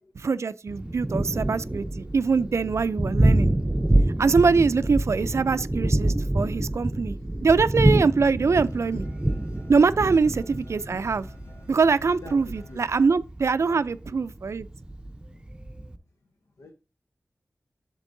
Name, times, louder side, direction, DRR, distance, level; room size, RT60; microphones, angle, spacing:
voice 1, 0.2-3.5 4.2-7.2 7.4-9.1 9.7-11.3 11.7-14.7, right 4 dB, 65° right, 0.4 m, -23 dB
Thunder, 0.7-16.0, right 1 dB, 15° right, 0.6 m, -26 dB
voice 2, 6.1-6.7 7.1-7.4 9.6-9.7 9.9-10.2 12.2-12.4 12.7-12.8 13.7-13.8 16.6-16.7, left 3 dB, 85° left, 0.9 m, -47 dB
sound 1, 8.5-12.9, left 1 dB, 65° left, 3.9 m, -48 dB
8.2 x 6.6 x 2.6 m
cardioid pair, 50°, 5 cm